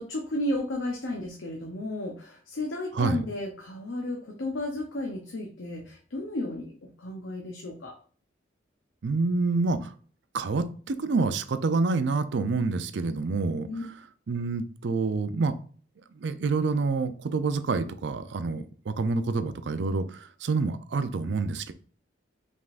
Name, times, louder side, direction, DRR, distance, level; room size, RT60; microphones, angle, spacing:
voice 1, 0.0-8.0 13.7-13.8, left 1 dB, 85° left, 2 dB, 0.8 m, -33 dB
voice 2, 9.0-9.9 10.3-13.7 14.3-15.5 16.2-21.7, right 3 dB, 70° right, 11 dB, 0.5 m, -27 dB
5.3 x 3.6 x 2.5 m, 0.43 s
head